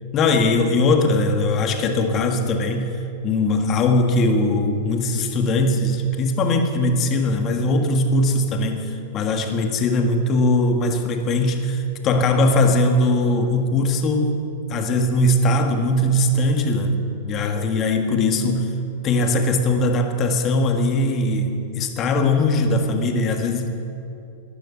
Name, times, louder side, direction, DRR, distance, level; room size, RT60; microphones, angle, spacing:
voice 1, 0.1-3.0 3.2-14.4 14.7-18.7 19.0-23.7, left 2 dB, 30° left, 5 dB, 1.7 m, -20 dB
13.0 x 11.0 x 8.9 m, 2.8 s
hypercardioid pair, 135°, 0 cm